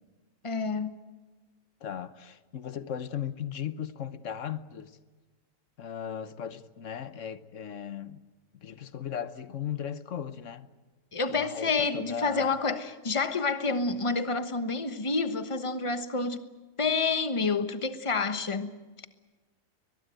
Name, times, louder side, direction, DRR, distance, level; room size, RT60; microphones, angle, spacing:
voice 1, 0.4-0.9 11.1-16.4 16.8-18.7, left 4 dB, 25° left, 1.2 m, -28 dB
voice 2, 1.8-5.0 5.8-8.2 8.6-10.7 11.3-12.6, left 9 dB, 70° left, 1.3 m, -37 dB
23.0 x 21.0 x 9.1 m
omnidirectional pair, 1.4 m